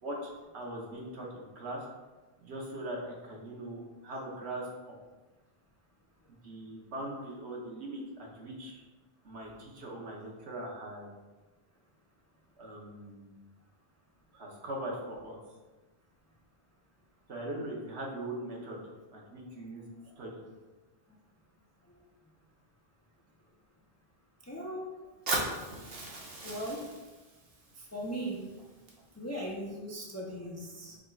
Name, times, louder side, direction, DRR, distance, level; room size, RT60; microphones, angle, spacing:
voice 1, 0.0-1.9 2.4-4.7 6.4-8.8 9.2-11.1 12.6-13.4 14.3-15.4 17.3-18.8 19.1-19.8 20.2-20.4, right 1 dB, 85° right, -2 dB, 1.2 m, -40 dB
voice 2, 24.5-24.8 26.4-26.8 27.8-28.4 29.2-31.0, right 1 dB, 25° left, -2 dB, 0.4 m, -38 dB
Fire, 25.3-29.3, right 2 dB, 65° right, 1.1 m, -38 dB
4.9 x 2.3 x 4.4 m, 1.2 s
omnidirectional pair, 1.1 m